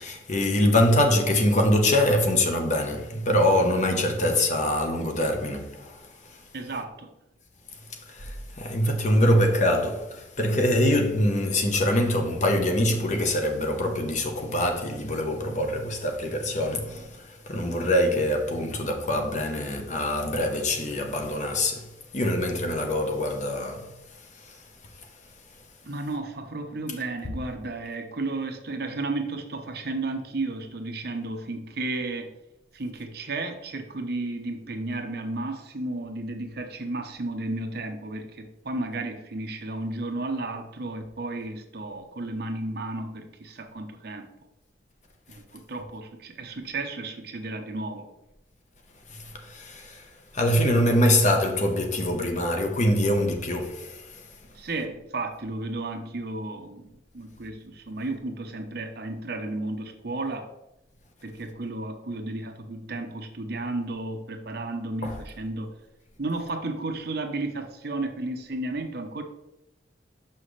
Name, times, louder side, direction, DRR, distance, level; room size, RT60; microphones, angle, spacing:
voice 1, 0.0-6.4 8.1-21.9 22.1-23.9 24.4-24.6 49.1-50.0 50.3-54.2 65.0-65.2, left 1 dB, 40° left, 1.0 m, -24 dB
voice 2, 6.5-7.1 25.8-32.3 32.7-44.3 45.3-48.1 54.5-56.9 57.1-60.5 61.2-65.7 66.2-69.2, right 2 dB, 60° right, 0.8 m, -33 dB
6.2 x 5.8 x 3.2 m
head